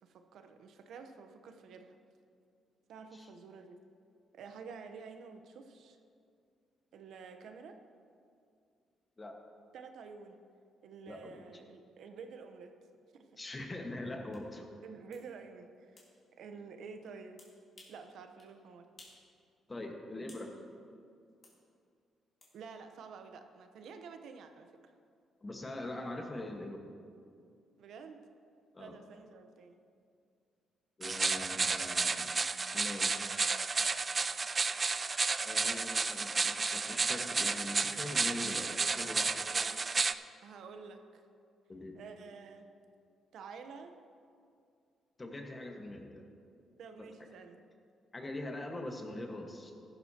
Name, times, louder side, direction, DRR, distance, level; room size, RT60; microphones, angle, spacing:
voice 1, 0.0-2.0 2.9-3.8 4.3-6.0 6.9-7.8 9.7-10.4 10.8-12.7 13.1-13.3 14.8-16.0 16.4-17.4 17.9-18.9 22.5-24.9 27.8-28.2 28.8-29.8 39.5-39.9 40.4-41.2 41.9-42.7 43.3-43.9 46.8-47.6, right 5 dB, 75° right, 7 dB, 0.9 m, -50 dB
voice 2, 13.4-14.7 19.7-20.5 25.4-26.8 28.7-29.0 31.0-32.3 32.7-33.5 35.4-39.5 41.7-42.0 45.2-46.3 47.0-47.1 48.1-49.7, left 1 dB, 25° left, 2 dB, 1.5 m, -42 dB
sound 1, 14.3-14.4 15.1-15.3 16.0-16.1 17.4-18.0 18.4-18.5 19.0-19.2 19.6-20.5 21.4-21.6 22.4-22.5, left 2 dB, 40° left, 3.1 m, -58 dB
sound 2, 31.0-40.1, right 4 dB, 30° right, 0.3 m, -32 dB
14.5 x 12.5 x 2.9 m, 2.3 s
cardioid pair, 90°, 0 cm